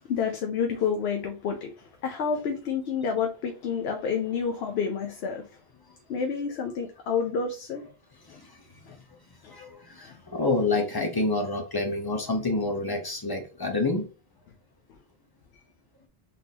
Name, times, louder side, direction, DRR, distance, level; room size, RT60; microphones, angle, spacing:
voice 1, 0.0-5.6 6.1-7.9 8.3-8.4 8.9-9.0 9.4-9.5 10.0-10.1 14.9-15.0, left 6 dB, 80° left, 0.9 m, -29 dB
voice 2, 9.5-14.0, left 2 dB, 25° left, 0.8 m, -28 dB
4.1 x 3.5 x 2.7 m
omnidirectional pair, 1.0 m